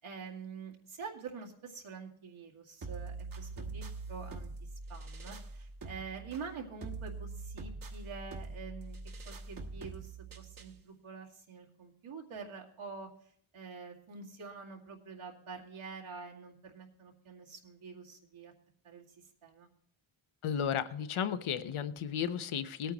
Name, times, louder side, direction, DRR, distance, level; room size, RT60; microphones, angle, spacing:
voice 1, 0.0-9.0 9.2-18.5 18.8-19.7, right 5 dB, 75° right, -2 dB, 2.3 m, -47 dB
sound 1, 2.8-10.8, right 3 dB, 45° right, 1.2 m, -44 dB
voice 2, 20.4-22.9, left 8 dB, 80° left, 10 dB, 1.0 m, -34 dB
19.0 x 9.1 x 3.0 m, 0.65 s
wide cardioid pair, 145°, 49 cm